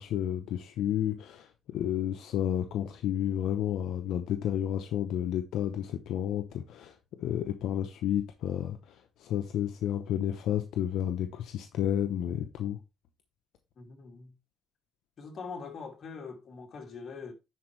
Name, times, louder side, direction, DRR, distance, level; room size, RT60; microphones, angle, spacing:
voice 1, 0.0-1.5 1.7-6.9 7.2-8.8 9.2-12.8, left 10 dB, 85° left, 0.8 m, -31 dB
voice 2, 13.8-14.3 15.2-17.3, left 5 dB, 55° left, 2.6 m, -43 dB
10.0 x 4.5 x 3.3 m
cardioid pair, 90°, 0 cm